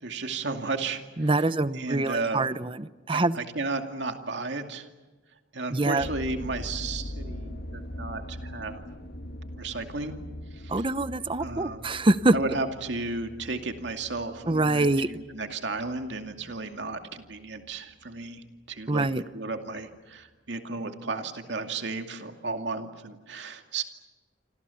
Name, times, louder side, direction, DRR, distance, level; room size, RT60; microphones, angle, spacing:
voice 1, 0.0-1.3 1.8-2.4 3.1-4.9 5.5-8.8 9.6-10.1 10.5-10.7 11.4-11.9 12.3-19.1 19.3-23.8, right 3 dB, 65° right, 5 dB, 2.4 m, -34 dB
voice 2, 1.2-3.4 5.7-6.1 10.7-12.3 14.5-15.1 18.9-19.2, right 2 dB, 30° right, 14 dB, 0.8 m, -25 dB
sound 1, 6.0-18.3 18.8-19.2 19.8-19.9 20.2-20.3, left 1 dB, 55° left, 1.4 m, -42 dB
28.0 x 26.5 x 7.1 m, 1.2 s
head